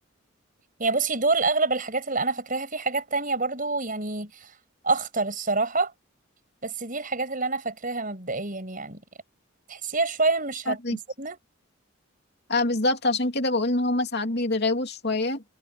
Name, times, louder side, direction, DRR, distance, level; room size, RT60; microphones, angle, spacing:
voice 1, 0.8-4.5 4.8-5.9 6.6-9.0 9.7-11.4, right 3 dB, 40° right, 6.2 m, -27 dB
voice 2, 10.7-11.0 12.5-15.4, left 2 dB, 55° left, 2.9 m, -25 dB
head